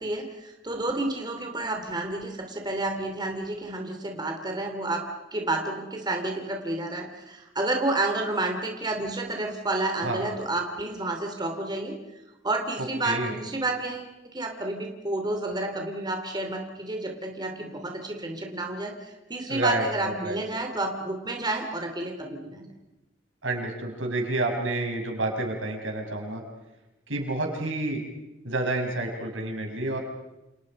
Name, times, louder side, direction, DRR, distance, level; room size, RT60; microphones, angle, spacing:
voice 1, 0.0-5.0 5.3-11.9 12.4-22.7, right 2 dB, 25° right, 3 dB, 3.0 m, -30 dB
voice 2, 19.5-20.4 23.4-26.4 27.1-28.0 28.4-30.0, right 2 dB, 80° right, 2 dB, 6.2 m, -29 dB
29.5 x 28.5 x 5.4 m, 1.0 s
head